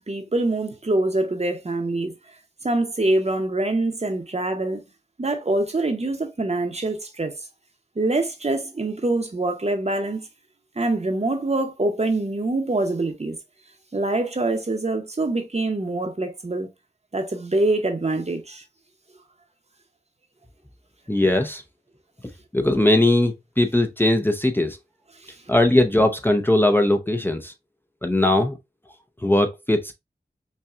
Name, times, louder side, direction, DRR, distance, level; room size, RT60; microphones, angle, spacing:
voice 1, 0.1-2.1 2.6-4.8 5.2-7.3 8.0-10.3 10.8-13.4 13.9-16.7 17.1-18.6 25.2-25.4, right 2 dB, 40° right, 0.8 m, -24 dB
voice 2, 21.1-21.6 22.5-24.8 25.5-27.5 28.0-28.6 29.2-29.9, left 1 dB, 10° left, 0.6 m, -19 dB
5.5 x 2.3 x 2.4 m
wide cardioid pair, 55°, 17 cm